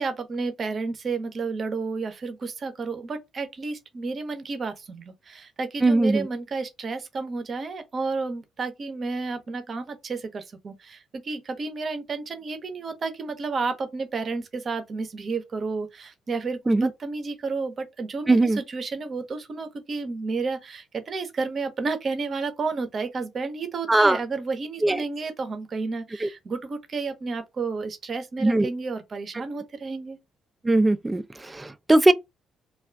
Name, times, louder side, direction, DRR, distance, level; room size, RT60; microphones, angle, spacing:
voice 1, 0.0-30.2, right 4 dB, 45° right, 0.7 m, -31 dB
voice 2, 5.8-6.3 16.7-16.9 18.3-18.6 23.9-24.2 24.8-25.0 26.2-26.3 28.4-28.7 30.6-32.1, right 2 dB, 20° right, 0.4 m, -20 dB
2.4 x 2.3 x 3.3 m
hypercardioid pair, 55°, 0 cm